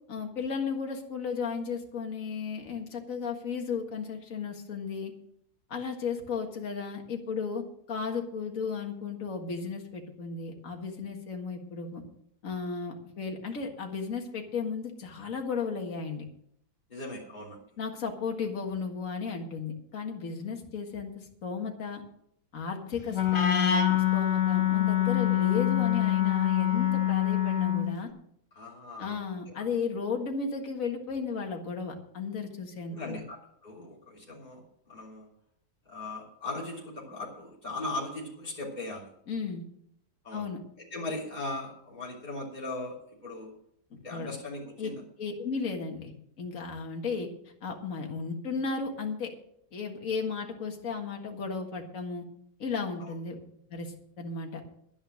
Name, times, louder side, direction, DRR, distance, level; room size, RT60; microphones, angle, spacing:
voice 1, 0.1-5.1 5.7-12.0 12.4-16.2 17.8-22.0 22.5-28.1 29.0-33.2 39.3-39.6 40.3-40.6 43.9-44.3 44.8-44.9 45.2-46.1 46.4-47.3 47.6-49.3 49.7-52.3 52.6-53.4 53.7-54.6, left 5 dB, 55° left, 2 dB, 2.2 m, -34 dB
voice 2, 16.9-17.6 28.5-29.2 32.9-35.3 35.9-39.1 40.2-40.4 40.9-43.0 43.2-43.5 44.0-45.0 53.0-53.1, left 2 dB, 25° left, -5 dB, 3.6 m, -38 dB
Wind instrument woodwind instrument, 23.1-28.0, left 12 dB, 80° left, 1.9 m, -25 dB
11.0 x 10.0 x 6.4 m, 0.70 s
omnidirectional pair, 1.8 m